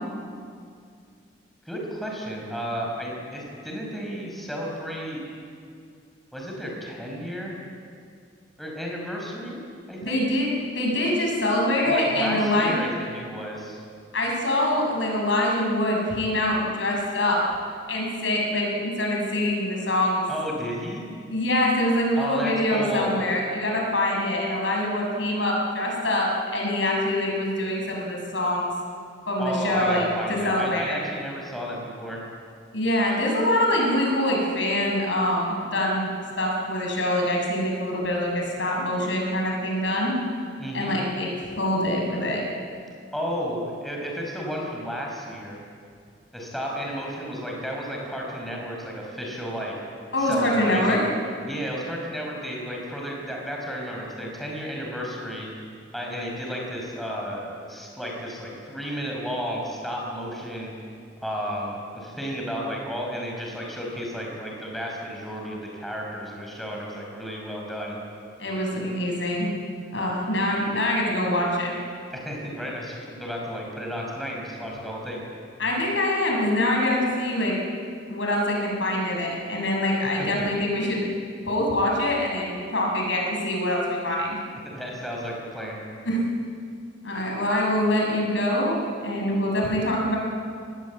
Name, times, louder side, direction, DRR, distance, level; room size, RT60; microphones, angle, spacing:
voice 1, 1.7-5.2 6.3-7.5 8.6-9.6 9.9-10.2 11.8-13.8 20.3-21.0 22.1-23.1 29.4-32.2 40.6-41.0 43.1-45.6 46.3-49.7 50.2-51.0 51.4-55.5 55.9-60.7 61.2-68.0 72.1-75.2 84.6-85.8, equal, ahead, -2 dB, 5.3 m, -32 dB
voice 2, 10.0-12.8 14.1-17.4 17.9-20.3 21.3-28.7 29.3-31.0 32.7-36.1 36.4-40.2 40.7-41.3 41.6-42.4 50.1-51.0 68.4-69.5 69.9-71.7 75.6-77.5 78.1-81.1 81.5-84.4 86.0-86.2 87.0-90.2, left 1 dB, 75° left, -1 dB, 6.8 m, -24 dB
25.5 x 19.5 x 8.5 m, 2.3 s
head